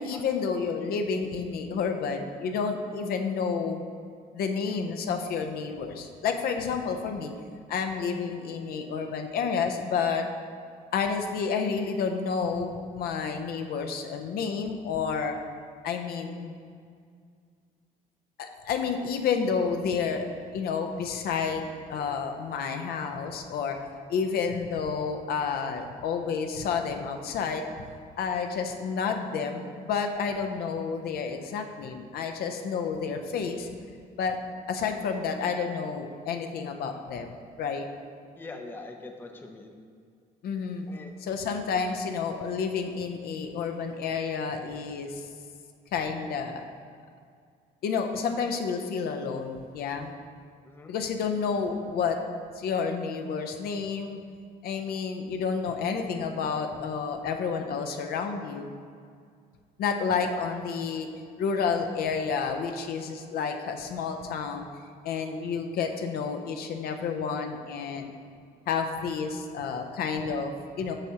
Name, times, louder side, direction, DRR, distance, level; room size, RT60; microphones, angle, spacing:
voice 1, 0.0-3.8 4.3-7.3 7.7-10.3 10.9-15.4 15.8-16.5 18.4-20.3 20.5-21.6 21.9-23.8 24.1-27.7 28.2-33.7 34.2-34.4 34.7-37.9 40.4-40.9 41.2-45.3 45.9-46.6 47.8-50.1 50.9-52.2 52.6-54.2 54.6-58.7 59.8-61.1 61.4-64.7 65.0-68.1 68.7-70.9, left 5 dB, 65° left, 5 dB, 0.6 m, -30 dB
voice 2, 38.4-39.8 40.9-41.1 50.7-50.9 60.3-60.4, left 3 dB, 10° left, 4 dB, 0.5 m, -43 dB
7.9 x 5.6 x 2.8 m, 2.2 s
cardioid pair, 110°, 17 cm